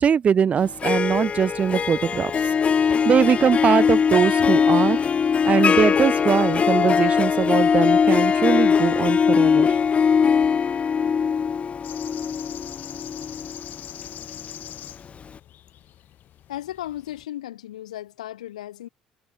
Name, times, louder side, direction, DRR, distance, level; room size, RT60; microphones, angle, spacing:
voice 1, 0.0-2.5 2.9-5.0 5.4-9.8, right 7 dB, 35° right, 0.4 m, -21 dB
Harp, 0.6-14.6, left 6 dB, 35° left, 0.5 m, -21 dB
sound 1, 11.8-17.2, left 12 dB, 55° left, 3.9 m, -42 dB
voice 2, 16.5-18.9, left 13 dB, 80° left, 2.5 m, -35 dB
figure-of-eight pair, 55°, 4 cm